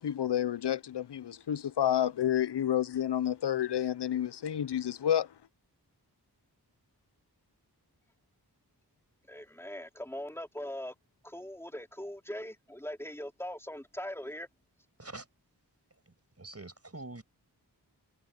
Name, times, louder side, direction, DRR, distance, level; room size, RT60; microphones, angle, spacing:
voice 1, 0.0-5.3, left 10 dB, 85° left, 0.7 m, -30 dB
voice 2, 9.3-10.9 11.2-14.5, left 1 dB, 5° left, 3.6 m, -41 dB
voice 3, 16.4-17.2, right 2 dB, 40° right, 6.3 m, -44 dB
wide cardioid pair, 80°, 40 cm